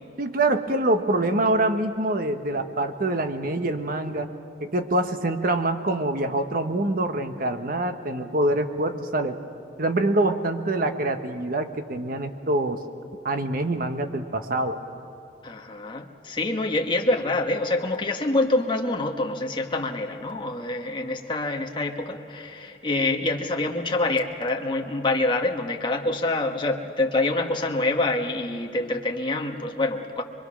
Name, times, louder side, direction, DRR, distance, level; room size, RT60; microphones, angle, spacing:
voice 1, 0.2-4.3 4.6-9.4 9.8-12.8 13.2-14.8, right 2 dB, 55° right, 7 dB, 1.2 m, -25 dB
voice 2, 15.4-30.2, left 2 dB, 30° left, 2 dB, 1.4 m, -26 dB
25.5 x 22.5 x 6.3 m, 2.6 s
head